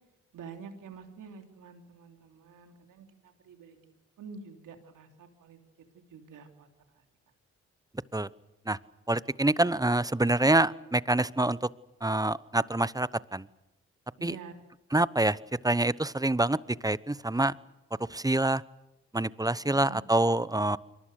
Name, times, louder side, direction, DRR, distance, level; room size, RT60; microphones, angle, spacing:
voice 1, 0.3-5.6 5.9-6.7 14.2-14.5 19.7-20.0, right 6 dB, 80° right, 5 dB, 3.2 m, -48 dB
voice 2, 9.1-11.6 12.0-13.4 14.2-14.4 14.9-15.4 15.6-16.6 16.8-17.5 18.1-18.6 19.1-20.8, right 2 dB, 10° right, 18 dB, 0.9 m, -26 dB
28.5 x 23.0 x 6.6 m, 0.97 s
supercardioid pair, 45°, 31 cm